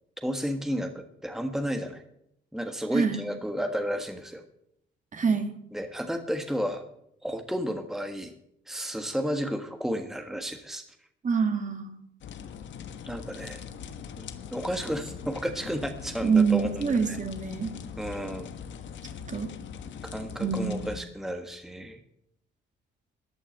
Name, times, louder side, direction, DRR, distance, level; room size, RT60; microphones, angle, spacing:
voice 1, 0.2-2.0 2.5-4.4 5.7-6.9 7.2-8.3 8.7-10.8 13.1-13.6 14.2-17.2 18.0-18.5 20.1-22.0, equal, ahead, 5 dB, 1.5 m, -32 dB
voice 2, 5.1-5.5 11.2-12.0 16.2-17.7 19.3-19.5 20.4-21.0, right 5 dB, 40° right, 6 dB, 2.2 m, -25 dB
sound 1, 12.2-21.0, left 7 dB, 70° left, 1.3 m, -41 dB
14.0 x 8.7 x 7.7 m, 0.75 s
cardioid pair, 90°, 20 cm